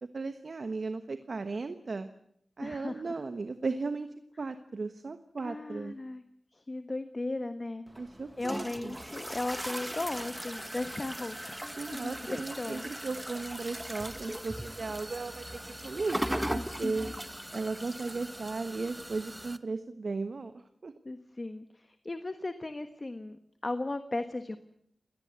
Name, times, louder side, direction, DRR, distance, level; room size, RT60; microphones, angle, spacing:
voice 1, 0.0-2.1 2.6-4.1 4.4-6.0 8.0-9.0 11.8-17.1 17.5-20.9, right 3 dB, 60° right, 9 dB, 1.2 m, -36 dB
voice 2, 2.6-3.2 5.4-6.2 6.5-7.8 8.4-12.9 16.5-17.1 21.0-24.6, left 2 dB, 35° left, 10 dB, 1.3 m, -37 dB
sound 1, 7.9-19.6, right 1 dB, 10° right, 1.2 m, -39 dB
28.0 x 19.0 x 8.2 m, 0.71 s
wide cardioid pair, 90°, 0 cm